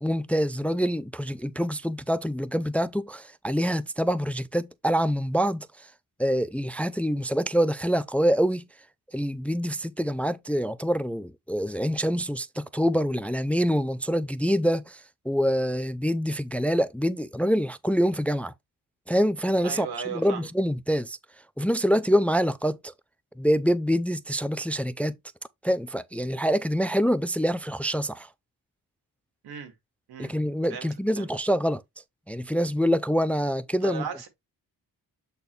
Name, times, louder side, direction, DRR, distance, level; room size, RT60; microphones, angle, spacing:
voice 1, 0.0-5.7 6.2-8.6 9.1-15.0 15.3-18.5 19.1-21.2 21.6-22.9 23.4-25.1 25.6-28.3 30.2-31.8 32.3-34.1, equal, 5° left, 0.4 m, -25 dB
voice 2, 19.6-20.5 29.4-29.7 30.1-30.3 30.7-30.9 31.2-31.3 33.8-34.3, right 7 dB, 90° right, 2.2 m, -36 dB
8.4 x 4.1 x 3.2 m
cardioid pair, 100°, 37 cm